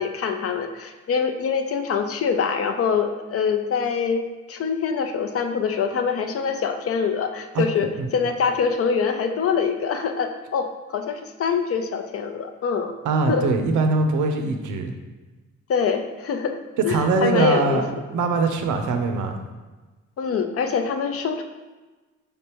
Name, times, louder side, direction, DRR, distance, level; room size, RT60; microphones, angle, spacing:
voice 1, 0.0-4.2 4.5-12.9 13.3-13.5 15.7-16.6 16.8-17.8 20.2-21.4, left 6 dB, 50° left, 6 dB, 0.5 m, -24 dB
voice 2, 13.0-14.9 16.9-17.9 18.1-19.4, right 3 dB, 80° right, 6 dB, 0.6 m, -22 dB
5.2 x 3.4 x 2.9 m, 1.2 s
cardioid pair, 90°, 30 cm